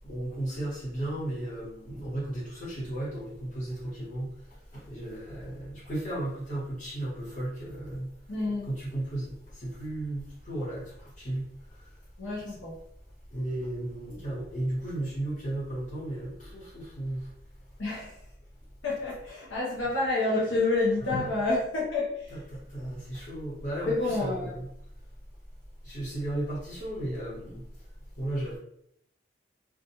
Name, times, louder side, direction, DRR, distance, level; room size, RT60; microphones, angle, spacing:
voice 1, 0.1-4.3 4.7-8.1 8.7-9.3 9.6-10.8 11.2-11.5 13.3-17.2 21.0-21.1 22.3-24.7 25.8-27.6 28.2-28.6, right 1 dB, 40° left, -8 dB, 1.3 m, -34 dB
voice 2, 8.3-8.7 12.2-12.8 17.8-18.1 18.8-22.3 23.9-24.6, left 2 dB, 85° left, -5 dB, 0.7 m, -28 dB
2.5 x 2.4 x 2.7 m, 0.73 s
head